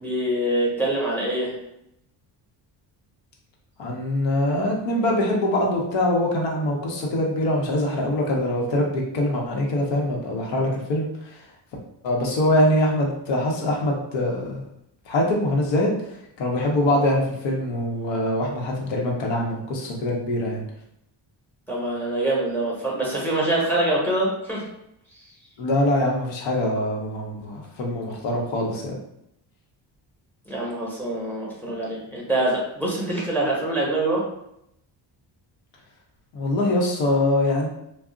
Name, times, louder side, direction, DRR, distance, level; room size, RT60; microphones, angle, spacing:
voice 1, 0.0-1.5 21.7-24.6 25.1-25.2 30.5-34.2, right 1 dB, 5° left, -4 dB, 0.7 m, -25 dB
voice 2, 3.8-11.4 12.0-14.6 15.1-16.0 16.4-20.6 25.6-28.9 36.3-37.7, left 1 dB, 85° left, -1 dB, 0.8 m, -23 dB
2.3 x 2.0 x 3.7 m, 0.78 s
cardioid pair, 140°, 43 cm